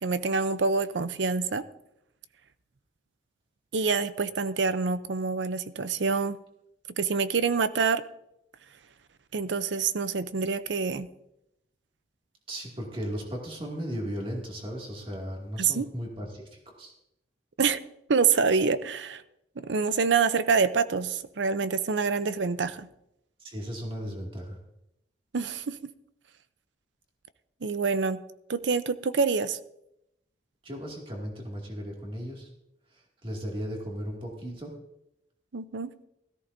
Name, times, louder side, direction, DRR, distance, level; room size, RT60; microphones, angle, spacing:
voice 1, 0.0-1.6 3.7-6.4 7.0-8.0 9.3-11.1 15.6-15.9 17.6-17.8 18.1-19.2 19.6-22.9 25.3-25.8 27.6-28.2 28.5-29.6 35.5-35.9, right 5 dB, 85° right, 14 dB, 0.6 m, -26 dB
voice 2, 12.5-16.9 23.4-24.6 30.6-32.5 33.2-34.7, equal, 30° right, -1 dB, 2.3 m, -36 dB
17.0 x 14.0 x 2.7 m, 0.82 s
head